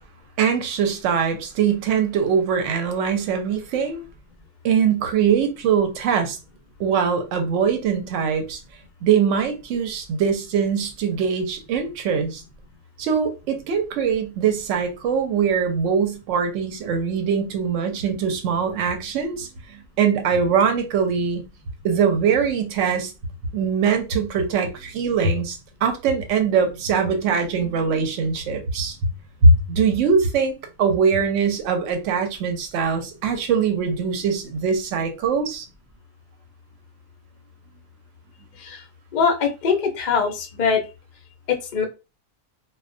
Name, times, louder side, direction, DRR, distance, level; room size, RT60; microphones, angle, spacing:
voice 1, 0.4-4.0 4.6-6.4 6.8-8.6 9.0-12.4 13.0-21.4 21.8-23.1 23.5-29.0 29.4-30.5 30.8-35.6, right 6 dB, 65° right, 0.9 m, -22 dB
voice 2, 39.1-40.8 41.7-41.9, left 6 dB, 55° left, 0.5 m, -22 dB
2.3 x 2.1 x 2.5 m
omnidirectional pair, 1.5 m